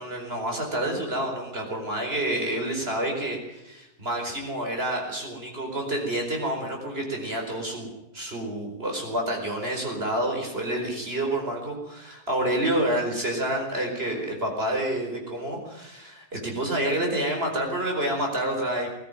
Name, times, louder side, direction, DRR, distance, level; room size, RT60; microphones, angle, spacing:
voice 1, 0.0-7.9 8.1-18.9, right 1 dB, 40° right, 2 dB, 5.2 m, -28 dB
20.5 x 13.5 x 9.4 m, 0.92 s
omnidirectional pair, 1.6 m